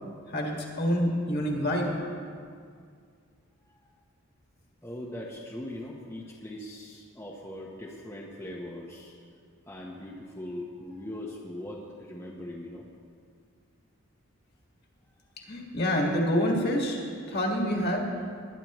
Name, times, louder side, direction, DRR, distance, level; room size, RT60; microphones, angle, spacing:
voice 1, 0.3-1.9 15.5-17.0 17.3-18.1, equal, 45° left, 0 dB, 1.8 m, -27 dB
voice 2, 4.8-9.1 9.7-12.8, left 1 dB, 10° left, -4 dB, 1.0 m, -40 dB
20.5 x 10.5 x 3.1 m, 2.2 s
head